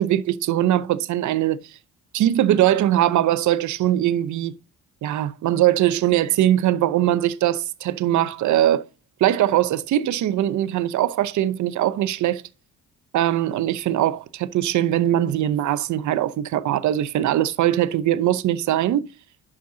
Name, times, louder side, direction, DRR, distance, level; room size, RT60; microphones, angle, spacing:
voice 1, 0.0-1.6 2.1-4.5 5.0-8.8 9.2-12.4 13.1-19.1, right 12 dB, 75° right, 0.8 m, -21 dB
11.0 x 6.4 x 2.8 m
cardioid pair, 90°, 30 cm